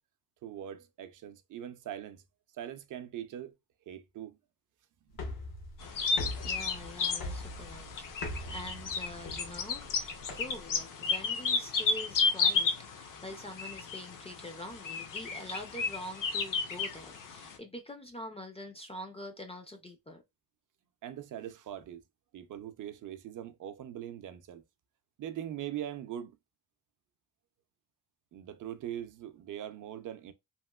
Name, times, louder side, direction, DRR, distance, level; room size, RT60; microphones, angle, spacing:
voice 1, 0.4-2.2 2.5-3.5 3.9-4.4 21.0-22.0 22.3-24.6 25.2-26.4 28.3-30.3, right 11 dB, 60° right, 0.5 m, -41 dB
sound 1, 5.1-10.8, left 1 dB, 85° left, 1.3 m, -42 dB
sound 2, 5.8-17.6, left 5 dB, 65° left, 0.6 m, -33 dB
voice 2, 6.4-20.2, left 1 dB, 20° left, 0.4 m, -45 dB
2.9 x 2.9 x 2.2 m
wide cardioid pair, 160°, 35 cm